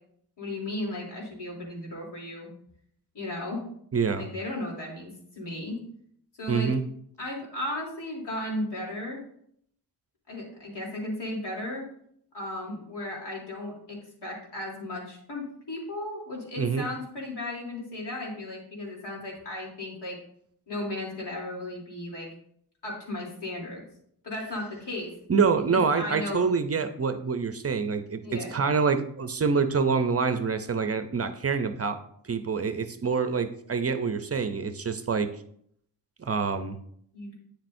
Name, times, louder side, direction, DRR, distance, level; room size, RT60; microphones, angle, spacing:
voice 1, 0.4-2.5 3.1-3.6 4.1-5.1 5.4-5.8 6.4-6.7 7.2-9.2 10.3-11.9 12.3-20.2 20.7-22.3 22.8-23.8 24.2-25.1 25.6-26.4 28.2-28.6 37.1-37.3, left 1 dB, 70° left, -2 dB, 3.4 m, -35 dB
voice 2, 3.9-4.3 6.5-6.8 16.6-16.9 25.3-35.3 36.2-36.8, right 5 dB, 35° right, 10 dB, 0.7 m, -26 dB
9.2 x 7.4 x 2.7 m, 0.67 s
cardioid pair, 70°, 43 cm